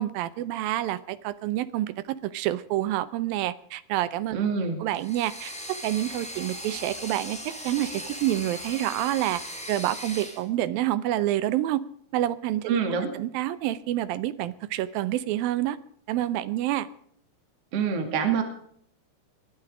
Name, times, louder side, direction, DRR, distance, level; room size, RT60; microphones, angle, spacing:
voice 1, 0.0-4.4 4.8-9.4 9.7-11.8 12.1-12.8 13.1-15.8 16.1-16.9, right 14 dB, 75° right, 15 dB, 2.4 m, -28 dB
voice 2, 4.3-4.8 12.7-13.1 17.7-18.4, right 6 dB, 40° right, 5 dB, 3.0 m, -25 dB
sound 1, 4.9-10.4, equal, ahead, 2.0 m, -38 dB
21.0 x 12.5 x 4.9 m, 0.63 s
omnidirectional pair, 4.7 m